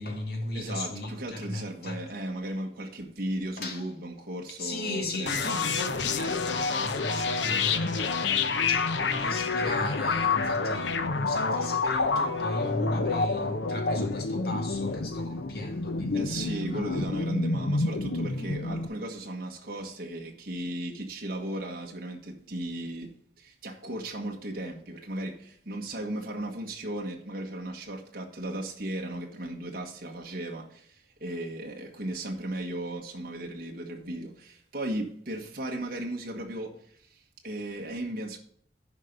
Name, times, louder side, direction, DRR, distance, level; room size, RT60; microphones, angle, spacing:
voice 1, 0.0-2.1 3.6-3.9 4.6-17.1, left 2 dB, 60° left, 2.2 m, -36 dB
voice 2, 0.5-5.6 16.1-38.4, right 1 dB, 55° right, 1.4 m, -36 dB
sound 1, 5.3-18.9, left 4 dB, 85° left, 0.8 m, -28 dB
10.5 x 5.2 x 5.3 m
head